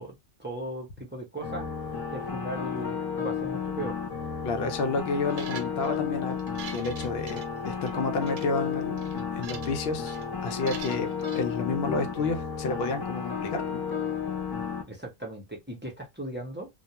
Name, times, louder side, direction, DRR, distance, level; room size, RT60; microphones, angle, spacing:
voice 1, 0.0-1.7 2.1-4.0 14.9-16.7, right 1 dB, 10° right, 0.7 m, -37 dB
sound 1, 1.4-14.8, left 6 dB, 30° left, 0.5 m, -33 dB
voice 2, 4.4-6.4 6.7-10.2 10.4-13.8, left 3 dB, 70° left, 0.8 m, -30 dB
sound 2, 5.3-6.0 6.4-7.9 8.2-8.5 9.0-9.8 10.1-10.3 10.7-11.4, right 6 dB, 75° right, 0.8 m, -43 dB
2.3 x 2.2 x 2.8 m
omnidirectional pair, 1.1 m